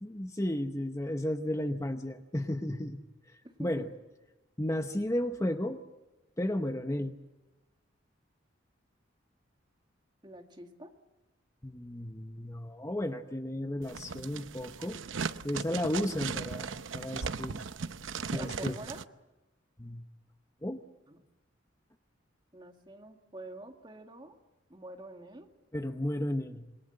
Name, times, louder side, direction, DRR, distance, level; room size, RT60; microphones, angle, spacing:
voice 1, 0.0-3.0 3.6-3.9 4.6-5.8 6.4-7.1 11.6-15.0 15.4-17.6 18.3-18.8 19.8-20.1 20.6-20.8 25.7-26.7, left 1 dB, 15° left, 7 dB, 0.9 m, -33 dB
voice 2, 3.4-3.9 10.2-10.9 18.3-19.0 21.1-21.2 22.5-24.4 24.7-25.5, right 1 dB, 25° right, 4 dB, 1.9 m, -46 dB
sound 1, 13.8-19.0, right 5 dB, 85° right, 0.8 m, -37 dB
26.5 x 21.5 x 7.8 m, 1.0 s
head